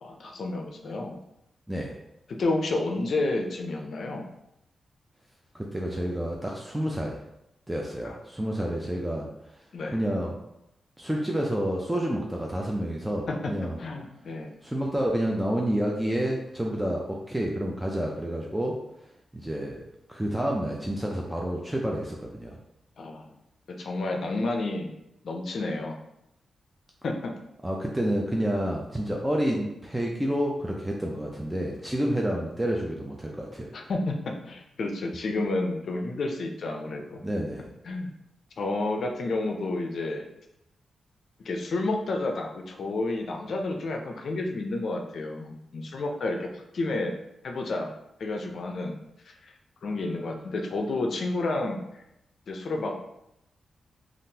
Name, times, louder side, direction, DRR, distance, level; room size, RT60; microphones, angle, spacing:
voice 1, 0.0-1.2 2.3-4.3 8.0-8.1 9.7-10.0 13.3-13.5 13.8-14.5 23.0-23.2 23.7-24.9 25.2-26.0 27.0-27.3 33.7-37.2 37.8-38.1 38.6-40.2 41.4-47.2 47.4-47.9 48.2-49.0 49.3-49.5 49.8-51.8 52.5-52.9, left 2 dB, 65° left, 2 dB, 0.5 m, -30 dB
voice 2, 5.5-7.2 7.7-9.3 9.9-10.4 11.0-13.8 14.6-18.8 19.3-19.8 20.1-22.6 27.6-33.7 37.2-37.7, equal, 10° right, -1 dB, 0.4 m, -29 dB
3.6 x 2.4 x 2.7 m, 0.83 s
wide cardioid pair, 110°, 0 cm